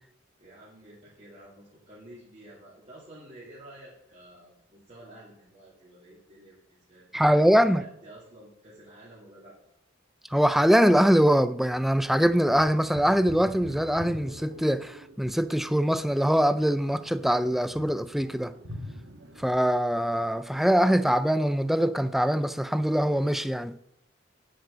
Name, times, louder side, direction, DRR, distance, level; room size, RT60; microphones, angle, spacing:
voice 1, 0.4-9.6, right 1 dB, 35° right, 2.6 m, -50 dB
voice 2, 7.1-7.8 10.3-18.5 19.4-23.8, equal, ahead, 0.3 m, -23 dB
sound 1, 11.8-19.7, equal, 65° right, 1.5 m, -45 dB
9.9 x 7.7 x 5.2 m
head